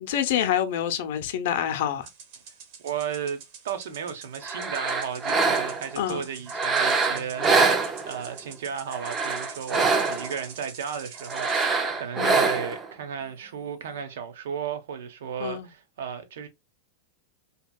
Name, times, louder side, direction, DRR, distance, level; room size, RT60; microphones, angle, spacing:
voice 1, 0.0-2.1 6.0-6.2 12.2-12.4 15.4-15.7, left 10 dB, 65° left, 0.5 m, -27 dB
sound 1, 2.0-11.7, right 6 dB, 50° right, 0.8 m, -46 dB
voice 2, 2.8-16.5, right 7 dB, 80° right, 0.7 m, -35 dB
sound 2, 4.4-5.9 6.5-8.4 8.9-10.4 11.3-12.9, right 4 dB, 20° right, 0.4 m, -24 dB
2.8 x 2.7 x 2.2 m
supercardioid pair, 160°, 0 cm